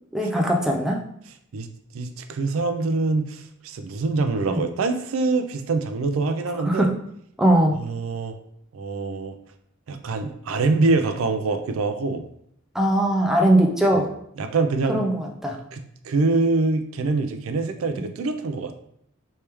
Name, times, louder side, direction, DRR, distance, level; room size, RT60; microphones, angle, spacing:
voice 1, 0.1-1.0 4.5-4.6 6.7-6.9 7.4-7.8 12.7-14.1 14.9-15.6, right 1 dB, ahead, 0 dB, 0.4 m, -20 dB
voice 2, 1.9-6.9 7.7-8.4 8.7-9.3 9.9-12.3 13.9-14.1 14.4-15.0 15.7-18.8, right 3 dB, 75° right, 7 dB, 0.4 m, -24 dB
3.3 x 3.3 x 3.0 m, 0.72 s
head